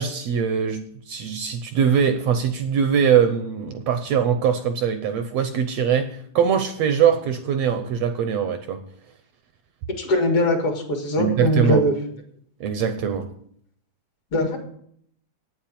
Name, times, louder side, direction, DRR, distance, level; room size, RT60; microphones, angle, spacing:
voice 1, 0.0-8.8 11.2-11.8 12.6-13.3, right 7 dB, 70° right, 8 dB, 1.7 m, -22 dB
voice 2, 10.0-11.9 14.3-14.6, left 1 dB, 50° left, 3 dB, 2.6 m, -21 dB
9.1 x 7.4 x 8.5 m, 0.66 s
omnidirectional pair, 3.5 m